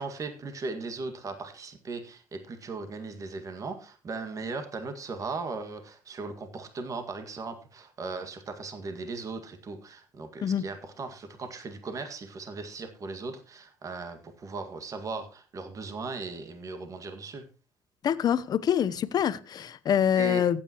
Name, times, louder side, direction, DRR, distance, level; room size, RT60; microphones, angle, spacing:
voice 1, 0.0-17.4 20.2-20.4, right 4 dB, 40° right, 1.9 m, -37 dB
voice 2, 18.0-20.6, left 9 dB, 50° left, 0.8 m, -25 dB
15.0 x 8.9 x 3.0 m
supercardioid pair, 80°, 9 cm